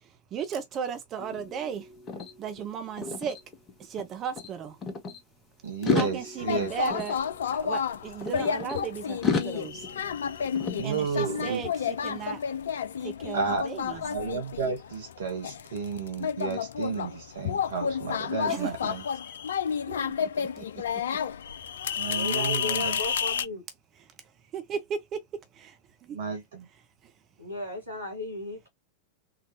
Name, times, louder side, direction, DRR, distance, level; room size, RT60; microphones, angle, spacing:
voice 1, 0.3-1.8 2.4-3.4 3.9-4.8 5.9-7.2 7.6-9.8 10.8-11.7 12.0-12.4 13.0-14.0 18.5-18.7 19.9-20.6 24.5-25.2, right 7 dB, 30° right, 0.6 m, -35 dB
sound 1, 1.2-4.1 4.4-5.2 5.7-8.8 9.2-11.5, left 5 dB, 25° left, 0.9 m, -34 dB
voice 2, 5.6-6.7 10.8-11.6 13.3-19.0 22.0-23.0 26.1-26.6, right 5 dB, 65° right, 0.8 m, -32 dB
sound 2, 6.4-23.5, left 7 dB, 65° left, 0.3 m, -31 dB
voice 3, 22.0-23.6 27.4-28.7, left 2 dB, 90° right, 1.6 m, -36 dB
3.8 x 2.2 x 2.8 m
figure-of-eight pair, 90°, 0 cm